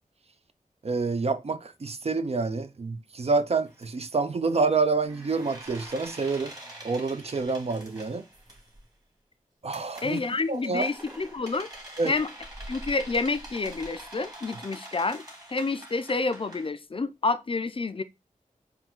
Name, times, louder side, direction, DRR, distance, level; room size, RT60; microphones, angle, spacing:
voice 1, 0.8-6.5 6.8-8.2 9.6-10.2 10.5-10.9 12.0-12.1, right 4 dB, 45° right, 0.5 m, -27 dB
sound 1, 3.7-3.9 5.1-8.8 9.7-16.7, right 1 dB, 25° right, 1.6 m, -45 dB
voice 2, 10.0-11.7 12.0-12.3 12.7-15.2 15.5-18.0, left 3 dB, 40° left, 0.4 m, -29 dB
3.5 x 2.3 x 4.3 m
cardioid pair, 45°, 14 cm